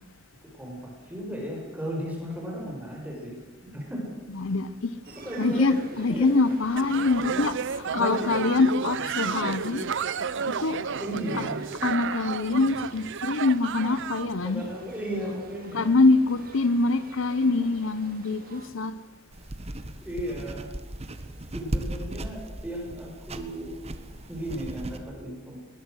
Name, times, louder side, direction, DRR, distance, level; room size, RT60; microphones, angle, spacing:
voice 1, 0.5-3.3 3.6-4.0 5.2-5.7 6.1-6.3 6.8-6.9 8.0-8.2 10.9-11.6 14.3-16.1 20.0-20.7 21.5-23.7 24.3-25.6, right 1 dB, 10° right, 5.5 m, -35 dB
voice 2, 4.3-5.0 5.4-9.9 10.5-10.8 11.4-11.5 11.8-14.6 15.7-19.0, left 3 dB, 70° left, 0.8 m, -24 dB
sound 1, 5.0-18.7, right 3 dB, 45° right, 2.8 m, -48 dB
sound 2, 6.8-14.3, right 6 dB, 65° right, 0.6 m, -32 dB
sound 3, 19.3-25.0, right 1 dB, 30° right, 1.4 m, -37 dB
20.5 x 20.5 x 6.4 m
head